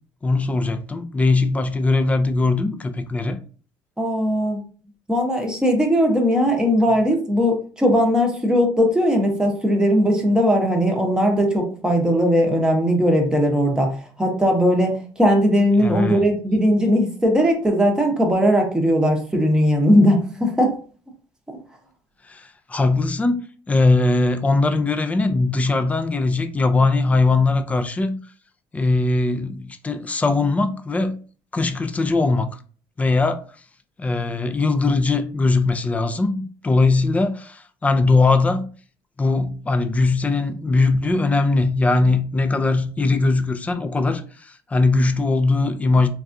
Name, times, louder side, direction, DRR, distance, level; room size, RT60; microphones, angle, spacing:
voice 1, 0.2-3.4 15.8-16.2 22.2-28.3 28.7-31.2 31.5-32.5 33.0-33.4 34.0-38.7 39.2-46.1, left 3 dB, 15° left, 0.4 m, -20 dB
voice 2, 4.0-4.6 5.1-20.7 21.5-21.6, equal, 10° right, 0.8 m, -19 dB
3.4 x 2.3 x 2.6 m
cardioid pair, 110°, 9 cm